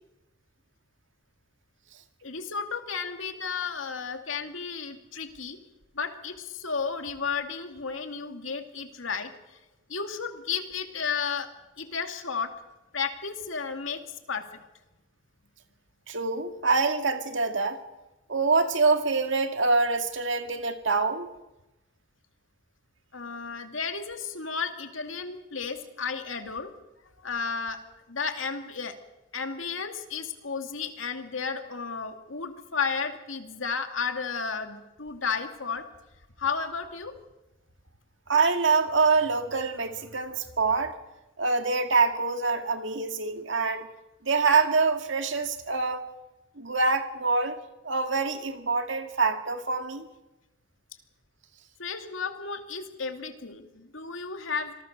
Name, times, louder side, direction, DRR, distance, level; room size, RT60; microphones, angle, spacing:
voice 1, 2.2-5.6 5.9-9.6 9.9-11.5 11.8-12.5 12.9-14.7 23.1-26.7 27.2-27.8 28.1-28.9 29.3-35.8 36.4-37.1 51.8-54.8, left 5 dB, 80° left, 2.5 m, -33 dB
voice 2, 16.1-17.8 18.3-21.3 38.3-40.9 41.4-43.9 44.2-46.0 46.6-47.6 47.8-50.1, right 4 dB, 65° right, 2.2 m, -25 dB
26.5 x 19.5 x 6.7 m
head